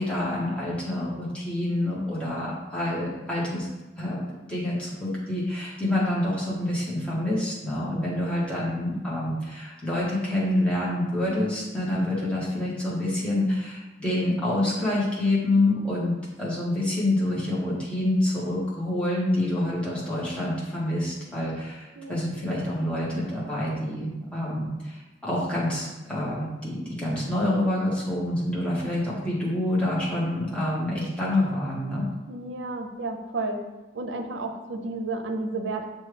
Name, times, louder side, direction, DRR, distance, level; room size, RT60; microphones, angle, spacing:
voice 1, 0.0-3.7 4.0-4.2 4.5-32.0, left 1 dB, 5° left, -7 dB, 1.0 m, -27 dB
voice 2, 7.8-8.2 22.0-22.2 32.3-33.6 33.9-35.9, right 2 dB, 85° right, 5 dB, 0.5 m, -32 dB
6.3 x 2.2 x 3.2 m, 1.1 s
head